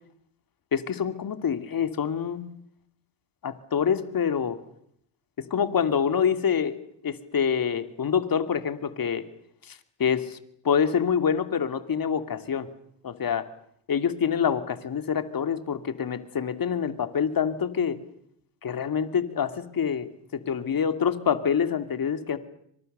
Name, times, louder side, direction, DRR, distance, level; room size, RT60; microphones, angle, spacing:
voice 1, 0.7-2.4 3.4-4.6 5.4-6.8 7.0-9.2 9.7-10.4 10.6-12.7 13.0-13.5 13.9-18.0 18.6-20.1 20.3-22.4, left 7 dB, 45° left, 10 dB, 2.7 m, -26 dB
30.0 x 25.0 x 6.8 m, 0.71 s
cardioid pair, 85°, 46 cm